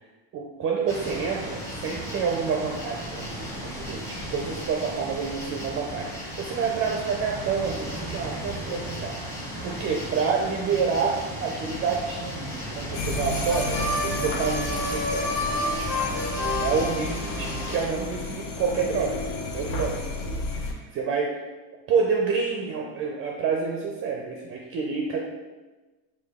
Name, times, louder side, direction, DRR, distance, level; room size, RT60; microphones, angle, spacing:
voice 1, 0.3-16.1 16.6-21.4 21.9-25.2, right 5 dB, 30° right, 0 dB, 0.4 m, -28 dB
sound 1, 0.9-17.8, equal, 5° left, 0.8 m, -35 dB
sound 2, 12.9-20.7, left 2 dB, 70° left, 0.8 m, -32 dB
Harmonica, 13.4-17.7, left 1 dB, 35° left, 1.5 m, -30 dB
4.8 x 2.3 x 3.5 m, 1.2 s
supercardioid pair, 125°, 43 cm